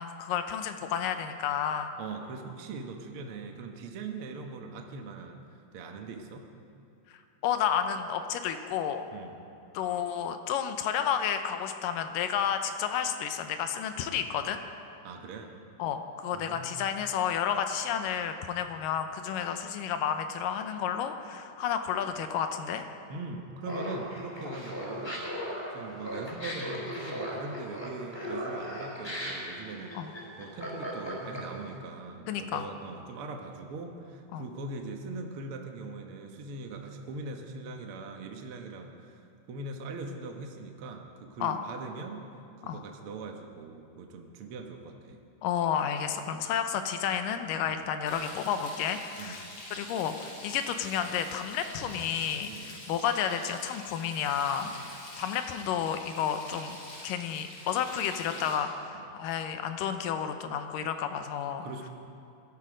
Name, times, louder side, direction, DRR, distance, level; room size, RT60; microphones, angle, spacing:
voice 1, 0.0-1.9 7.4-9.0 9.7-14.6 15.8-22.8 24.5-24.6 29.9-30.1 32.3-32.7 34.3-34.4 41.4-41.6 42.6-42.8 45.4-49.4 49.7-56.8 57.0-61.7, left 8 dB, 90° left, 7 dB, 2.5 m, -31 dB
voice 2, 2.0-6.5 9.1-9.3 15.0-15.5 16.3-16.7 23.1-39.2 39.5-42.2 42.6-45.2 47.7-47.8 49.2-49.4 52.5-52.8 54.6-54.9 61.6-61.9, right 3 dB, 60° right, 3 dB, 1.6 m, -41 dB
Laughter, 23.6-31.7, equal, 5° left, 3.8 m, -37 dB
Frying (food), 48.1-58.5, left 1 dB, 50° left, 5.6 m, -46 dB
20.5 x 13.0 x 5.1 m, 2.6 s
omnidirectional pair, 3.8 m